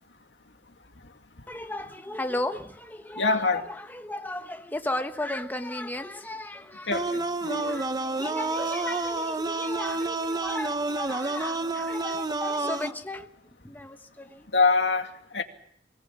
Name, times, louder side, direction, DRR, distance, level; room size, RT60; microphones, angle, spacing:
voice 1, 1.5-3.3 3.8-6.9 7.5-13.3 13.6-14.5, left 1 dB, 10° left, 1.2 m, -35 dB
voice 2, 3.2-3.7 6.9-7.8 14.5-15.4, left 3 dB, 80° left, 2.2 m, -25 dB
sound 1, 6.9-12.9, right 2 dB, 25° right, 0.9 m, -29 dB
24.0 x 19.0 x 7.5 m
head